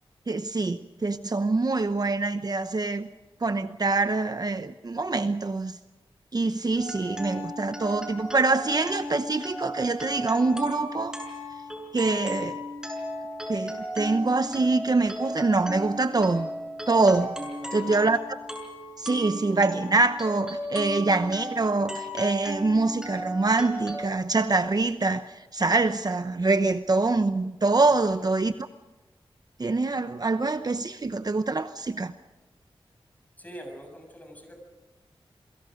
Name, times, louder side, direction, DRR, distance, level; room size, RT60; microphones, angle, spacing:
voice 1, 0.3-3.1 3.4-5.8 6.3-11.2 11.9-12.6 13.5-16.5 16.9-17.3 17.7-18.2 19.0-28.7 29.6-32.1, right 3 dB, 40° right, 0.9 m, -25 dB
sound 1, 6.7-24.0, equal, 5° right, 6.8 m, -36 dB
voice 2, 17.3-17.9 27.9-28.1 33.4-34.6, equal, 15° left, 7.7 m, -44 dB
28.5 x 23.0 x 5.3 m
wide cardioid pair, 90°, 10 cm